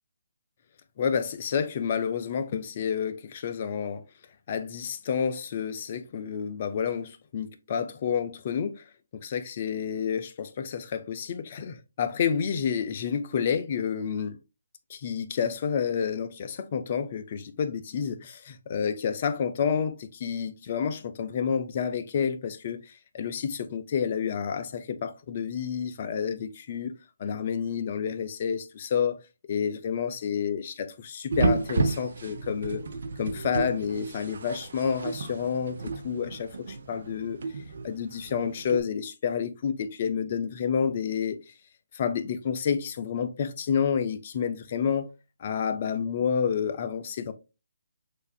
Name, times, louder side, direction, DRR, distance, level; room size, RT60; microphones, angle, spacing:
voice 1, 1.0-4.0 4.5-8.8 9.2-14.4 14.9-26.9 27.2-29.2 29.5-32.8 33.2-37.4 37.8-41.5 41.9-45.1 45.4-47.3, left 7 dB, 40° left, 0.6 m, -29 dB
sound 1, 31.3-38.8, right 3 dB, 60° right, 0.8 m, -32 dB
6.4 x 2.7 x 2.4 m
figure-of-eight pair, 145°, 0 cm